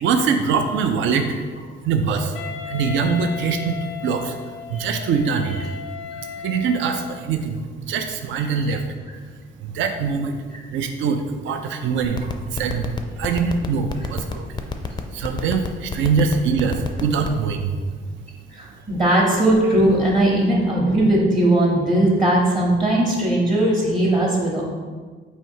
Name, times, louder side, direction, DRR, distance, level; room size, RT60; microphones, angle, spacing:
voice 1, 0.0-1.3 1.8-2.3 2.7-4.3 4.7-5.5 6.4-8.8 9.6-10.4 10.7-12.9 13.2-14.4 15.1-17.7, right 5 dB, 75° right, 6 dB, 0.4 m, -23 dB
Wind instrument woodwind instrument, 2.3-7.3, left 8 dB, 85° left, 0.6 m, -35 dB
sound 1, 12.0-17.4, left 5 dB, 20° left, 0.4 m, -26 dB
voice 2, 18.5-24.6, right 1 dB, 25° right, -4 dB, 0.9 m, -19 dB
4.3 x 2.7 x 4.4 m, 1.5 s
cardioid pair, 90°, 20 cm